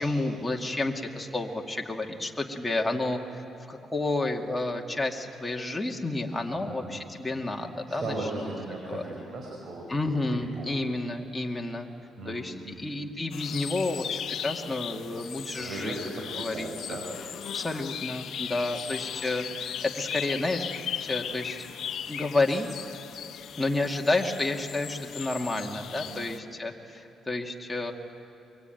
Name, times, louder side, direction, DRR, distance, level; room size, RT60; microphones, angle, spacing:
voice 1, 0.0-8.5 8.9-9.0 9.9-11.9 12.3-16.0 16.3-17.0 17.5-20.7 21.0-21.7 22.1-22.7 23.6-27.9, left 2 dB, 10° left, 1 dB, 2.2 m, -30 dB
voice 2, 6.5-7.0 7.9-10.0 10.6-10.7 12.2-12.9 15.6-17.1 26.1-26.3, right 2 dB, 55° right, -1 dB, 5.3 m, -37 dB
sound 1, 13.3-26.4, left 9 dB, 70° left, 1.0 m, -37 dB
23.5 x 23.5 x 9.3 m, 2.8 s
cardioid pair, 90°, 0 cm